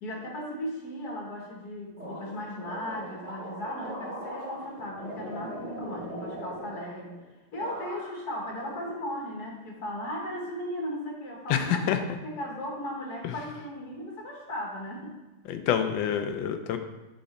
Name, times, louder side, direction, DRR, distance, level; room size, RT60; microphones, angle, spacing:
voice 1, 0.0-7.2 7.5-15.1, equal, 55° left, -1 dB, 1.4 m, -37 dB
sound 1, 2.0-7.2 7.6-8.3 8.6-9.5, equal, 55° right, 2.4 m, -40 dB
voice 2, 11.5-12.0 13.2-13.3 15.5-16.8, left 9 dB, 75° left, 8 dB, 1.2 m, -27 dB
7.7 x 4.3 x 4.0 m, 1.1 s
omnidirectional pair, 2.3 m